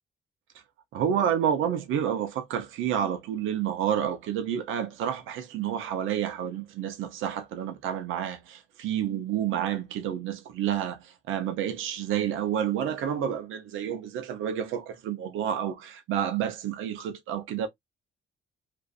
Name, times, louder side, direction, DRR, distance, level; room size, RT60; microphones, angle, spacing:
voice 1, 0.9-17.7, right 9 dB, 85° right, 0.6 m, -29 dB
2.4 x 2.4 x 2.3 m
cardioid pair, 90°, 20 cm